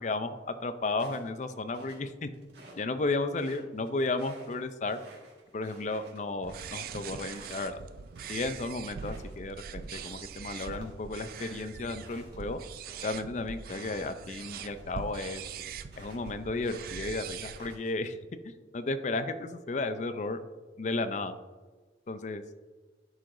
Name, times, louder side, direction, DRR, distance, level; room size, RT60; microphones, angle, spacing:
voice 1, 0.0-2.3 2.7-5.0 5.5-7.8 8.3-12.6 13.0-15.4 16.0-18.2 18.4-20.4 20.8-21.3 22.1-22.4, left 3 dB, 40° left, 10 dB, 0.5 m, -33 dB
sound 1, 0.9-2.8 3.2-8.5 8.9-9.4 9.7-16.3 16.6-18.1, right 2 dB, 70° right, 1.7 m, -54 dB
sound 2, 6.4-17.7, right 6 dB, 50° right, 0.3 m, -42 dB
sound 3, 9.2-9.7 10.8-11.3 12.3-13.2 13.8-14.6 15.4-16.1 16.7-17.3, equal, 25° right, 1.7 m, -57 dB
11.0 x 4.7 x 2.6 m, 1.4 s
head